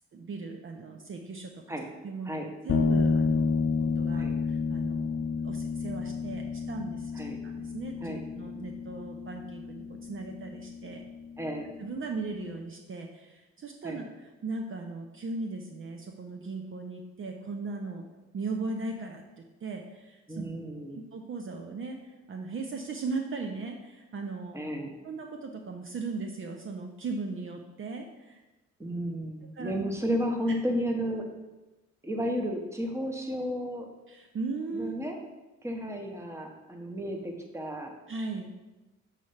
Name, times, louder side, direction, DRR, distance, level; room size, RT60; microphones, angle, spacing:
voice 1, 0.1-1.8 2.0-2.4 2.6-7.1 7.4-11.0 11.8-18.0 18.3-20.5 21.1-24.6 25.0-28.4 29.5-29.8 34.1-35.0 38.1-38.5, right 3 dB, 45° right, 3 dB, 0.7 m, -38 dB
sound 1, 2.7-12.2, left 4 dB, 45° left, 0.7 m, -31 dB
voice 2, 11.4-11.7 13.8-14.0 20.3-21.0 24.5-24.9 28.8-31.3 32.0-33.9 34.7-35.2 35.6-37.9, equal, 10° right, 2 dB, 1.1 m, -33 dB
6.9 x 3.3 x 5.5 m, 1.1 s
cardioid pair, 90°, 30 cm